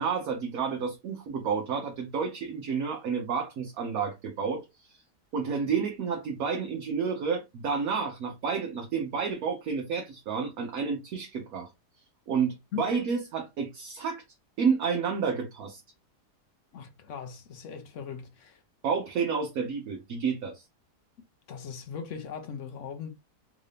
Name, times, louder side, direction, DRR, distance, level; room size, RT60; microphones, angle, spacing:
voice 1, 0.0-4.9 5.3-11.7 12.3-14.2 14.6-15.8 18.8-20.6, right 6 dB, 65° right, 1.1 m, -30 dB
voice 2, 16.7-18.6 21.5-23.1, left 7 dB, 65° left, 0.8 m, -39 dB
3.7 x 2.6 x 3.3 m
omnidirectional pair, 1.8 m